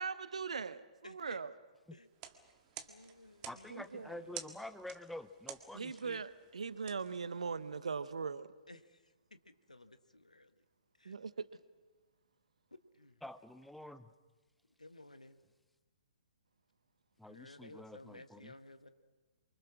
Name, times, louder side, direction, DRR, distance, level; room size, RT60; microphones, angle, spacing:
voice 1, 0.0-1.5 3.7-4.1 5.7-8.5 11.0-11.5, right 5 dB, 65° right, 1.0 m, -40 dB
voice 2, 1.0-1.4 1.9-2.1 2.8-4.4 8.7-10.6 10.9-11.2 12.7-13.2 14.8-15.4 17.2-18.9, left 2 dB, 80° left, 1.5 m, -56 dB
sound 1, 2.0-7.9, right 10 dB, 30° right, 1.7 m, -52 dB
voice 3, 3.5-6.2 13.2-14.1 17.2-18.5, left 1 dB, ahead, 0.8 m, -48 dB
28.5 x 24.5 x 6.2 m
figure-of-eight pair, 120°, 4 cm